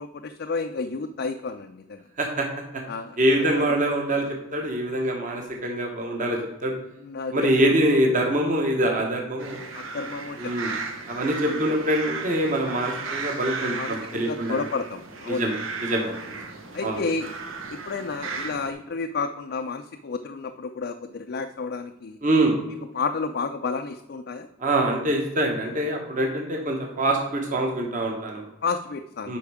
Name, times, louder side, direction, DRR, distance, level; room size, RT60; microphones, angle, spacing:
voice 1, 0.0-2.0 2.9-3.2 3.6-3.8 7.0-7.7 9.7-10.8 11.4-11.7 13.8-15.5 16.7-17.3 17.7-22.2 22.9-24.5 28.6-29.3, left 4 dB, 45° left, 6 dB, 0.4 m, -31 dB
voice 2, 3.2-4.3 4.5-6.7 7.3-9.6 10.4-10.7 11.1-14.6 15.3-16.2 16.8-17.0 22.2-22.5 24.6-28.4 29.3-29.4, right 1 dB, 35° right, 1 dB, 1.0 m, -24 dB
sound 1, 9.4-18.7, right 4 dB, 65° right, 0.9 m, -35 dB
8.3 x 5.3 x 4.8 m, 0.94 s
head